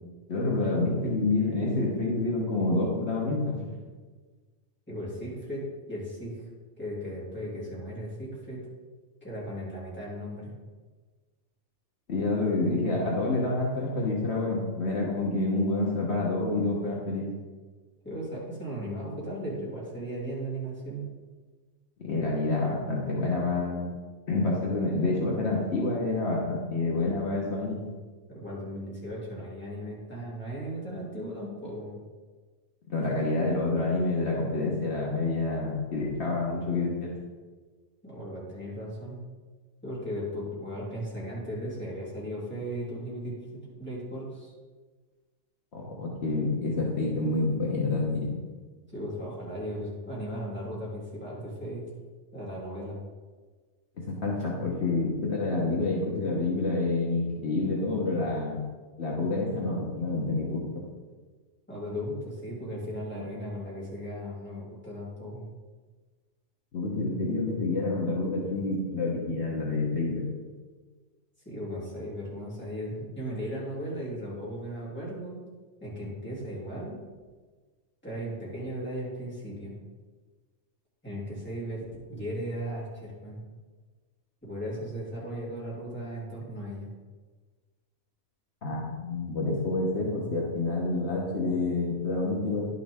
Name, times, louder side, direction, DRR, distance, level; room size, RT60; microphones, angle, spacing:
voice 1, 0.3-3.6 12.1-17.3 22.0-23.9 24.3-27.8 32.9-37.1 45.7-48.4 54.0-58.6 59.0-60.8 66.7-70.3 88.6-92.7, left 2 dB, 55° left, -3 dB, 1.5 m, -28 dB
voice 2, 4.9-6.4 6.8-8.7 9.2-10.6 18.0-21.1 28.3-32.0 38.0-39.2 39.8-43.4 43.6-44.5 48.9-51.8 52.3-53.0 61.7-65.5 71.4-75.4 75.8-77.0 78.0-79.8 81.0-83.4 84.4-86.9, equal, 10° left, -7 dB, 2.8 m, -36 dB
11.0 x 6.4 x 3.6 m, 1.4 s
omnidirectional pair, 1.4 m